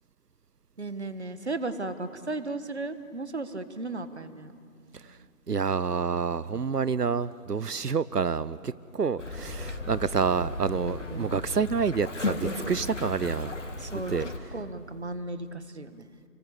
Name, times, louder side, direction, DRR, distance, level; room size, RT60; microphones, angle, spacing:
voice 1, 0.8-4.5 5.0-5.3 10.8-11.4 13.8-16.1, right 2 dB, 45° right, 11 dB, 1.6 m, -36 dB
voice 2, 5.5-13.5 13.9-14.3, right 5 dB, 90° right, 18 dB, 0.8 m, -28 dB
sound 1, 9.2-14.4, left 2 dB, 50° left, 2.8 m, -35 dB
29.5 x 23.5 x 8.3 m, 2.4 s
figure-of-eight pair, 165°, 46 cm